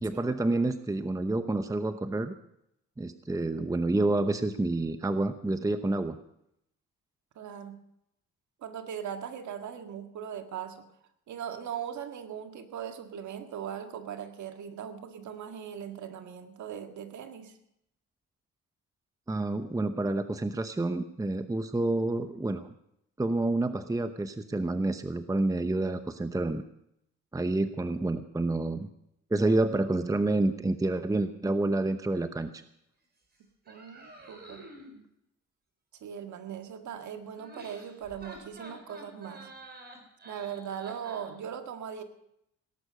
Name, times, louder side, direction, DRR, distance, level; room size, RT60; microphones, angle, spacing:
voice 1, 0.0-2.4 3.0-6.2 19.3-22.7 23.2-26.6 27.3-28.9 29.3-32.5, right 2 dB, 10° right, 10 dB, 0.8 m, -28 dB
voice 2, 7.4-7.8 8.6-10.9 11.3-17.6 33.7-34.6 36.0-39.5 40.2-42.0, right 8 dB, 70° right, 6 dB, 1.9 m, -39 dB
sound 1, 33.6-35.0 37.3-41.3, right 1 dB, 35° right, 5.2 m, -49 dB
18.0 x 11.0 x 6.4 m, 0.78 s
cardioid pair, 90°, 30 cm